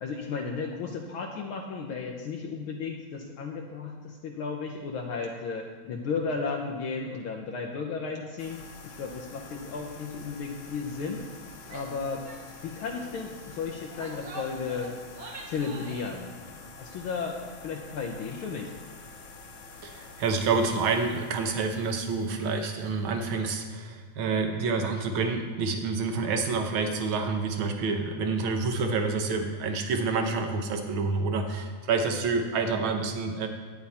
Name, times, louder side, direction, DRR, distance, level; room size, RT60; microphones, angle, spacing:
voice 1, 0.0-11.2 11.7-12.2 12.6-14.9 15.5-16.3 16.8-18.7, left 5 dB, 90° left, 1 dB, 1.1 m, -34 dB
sound 1, 8.4-23.8, left 3 dB, 65° left, 1.3 m, -48 dB
Female speech woman speaking / Yell, 11.6-12.0 12.3-12.4 12.7-13.0 13.7-16.1, right 2 dB, 50° right, 1.8 m, -44 dB
voice 2, 19.8-33.5, right 4 dB, 70° right, 5 dB, 1.2 m, -28 dB
12.5 x 9.5 x 4.2 m, 1.5 s
omnidirectional pair, 3.5 m